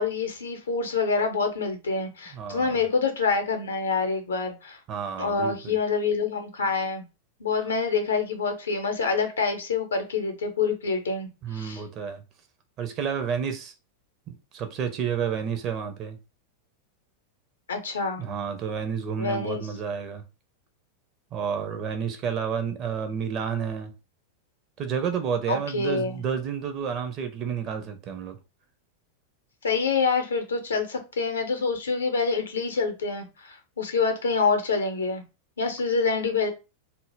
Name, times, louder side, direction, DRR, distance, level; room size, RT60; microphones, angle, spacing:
voice 1, 0.0-4.8 5.2-7.0 7.4-11.8 17.7-18.2 19.2-19.6 25.5-26.2 29.6-35.2 35.6-36.5, left 4 dB, 70° left, 0.6 m, -26 dB
voice 2, 2.3-2.8 4.9-5.8 11.4-12.2 12.8-13.7 14.3-16.2 18.2-20.2 21.3-23.9 24.8-28.4, right 7 dB, 35° right, 0.5 m, -30 dB
2.1 x 2.0 x 3.2 m
figure-of-eight pair, 90°, 0 cm